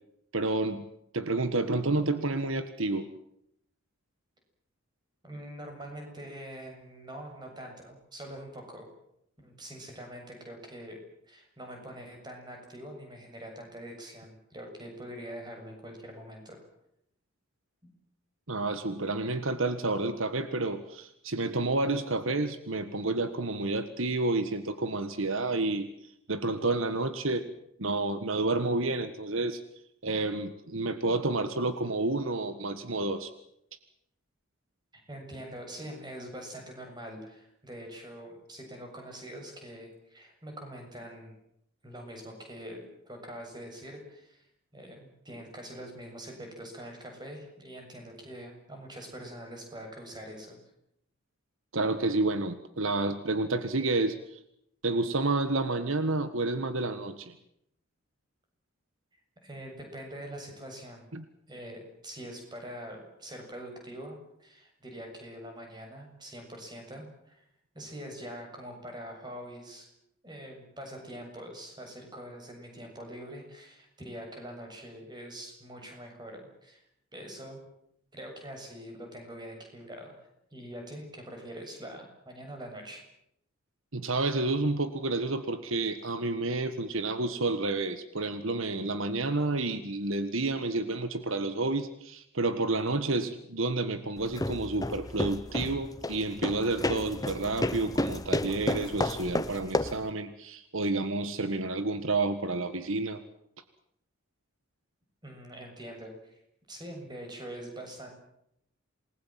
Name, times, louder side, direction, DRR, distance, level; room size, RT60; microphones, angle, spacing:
voice 1, 0.3-0.8 1.1-3.1 18.5-25.9 26.3-27.5 27.8-29.6 30.0-33.3 51.7-54.4 54.8-57.3 61.1-61.2 83.9-103.2, right 2 dB, 70° right, 11 dB, 1.6 m, -30 dB
voice 2, 5.2-8.9 9.4-11.0 11.2-16.7 17.8-17.9 35.1-41.3 41.8-42.8 43.1-44.5 44.7-50.6 59.4-61.1 61.5-67.4 67.7-69.9 70.2-76.8 77.1-77.6 78.1-83.0 105.2-106.4 106.7-108.1, equal, 20° right, 3 dB, 7.4 m, -44 dB
sound 1, 94.2-100.1, left 1 dB, 15° left, 0.9 m, -32 dB
28.0 x 20.5 x 7.6 m, 0.75 s
head